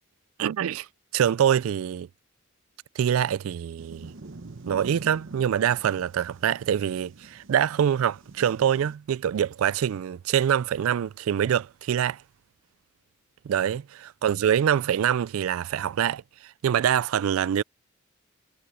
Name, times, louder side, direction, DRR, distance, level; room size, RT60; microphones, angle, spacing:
voice 1, 0.4-0.9 1.1-2.1 3.0-4.1 4.7-12.2 13.5-16.2 16.6-17.6, right 9 dB, 85° right, 0.3 m, -25 dB
sound 1, 3.8-9.0, right 2 dB, 65° right, 0.9 m, -46 dB
head